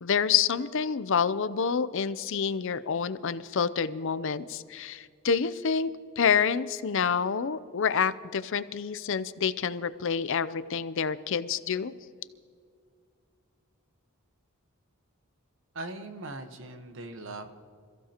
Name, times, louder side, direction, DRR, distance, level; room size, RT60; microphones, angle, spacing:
voice 1, 0.0-5.9 6.2-11.9, left 6 dB, 60° left, 14 dB, 0.5 m, -28 dB
voice 2, 15.7-17.5, right 2 dB, 60° right, 7 dB, 1.2 m, -40 dB
27.0 x 15.0 x 2.9 m, 2.1 s
head